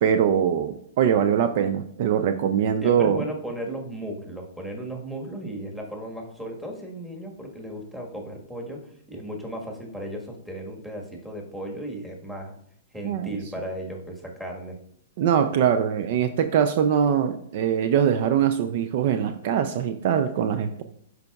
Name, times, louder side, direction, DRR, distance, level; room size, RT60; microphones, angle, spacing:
voice 1, 0.0-3.3 13.0-13.3 15.2-20.8, right 8 dB, 50° right, 9 dB, 0.4 m, -22 dB
voice 2, 2.8-8.8 9.1-12.6 12.9-14.8, right 1 dB, 5° right, 0 dB, 1.5 m, -35 dB
11.5 x 4.7 x 2.4 m, 0.67 s
hypercardioid pair, 115°, 0 cm